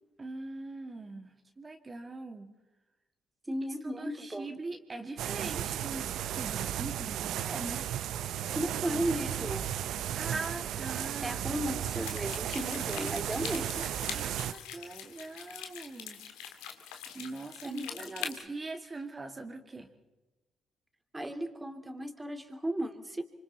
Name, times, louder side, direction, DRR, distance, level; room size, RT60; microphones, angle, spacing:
voice 1, 0.2-2.5 3.8-7.9 10.1-11.6 14.1-16.2 17.1-19.9, right 3 dB, 30° right, 4 dB, 2.1 m, -42 dB
voice 2, 3.5-4.5 8.5-9.7 11.2-13.9 17.6-18.4 21.1-23.2, right 1 dB, 15° right, 7 dB, 2.6 m, -35 dB
sound 1, 5.2-14.5, right 11 dB, 70° right, 0.6 m, -34 dB
sound 2, 11.9-18.4, left 9 dB, 85° left, 1.8 m, -43 dB
25.5 x 25.0 x 4.2 m, 1.1 s
hypercardioid pair, 55°, 0 cm